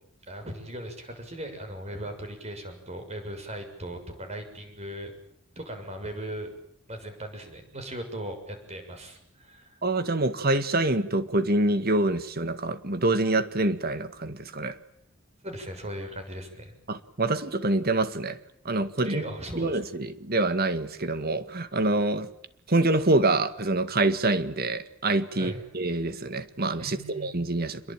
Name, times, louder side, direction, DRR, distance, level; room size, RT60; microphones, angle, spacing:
voice 1, 0.3-5.1 5.5-6.5 6.9-9.8 15.4-16.7 19.0-19.8 25.4-25.6 26.8-27.3, right 1 dB, 35° right, 6 dB, 6.8 m, -38 dB
voice 2, 9.8-14.8 16.9-18.4 18.7-19.2 19.5-22.3 22.7-27.9, right 2 dB, 50° right, 12 dB, 1.9 m, -26 dB
27.5 x 22.5 x 9.1 m, 0.69 s
head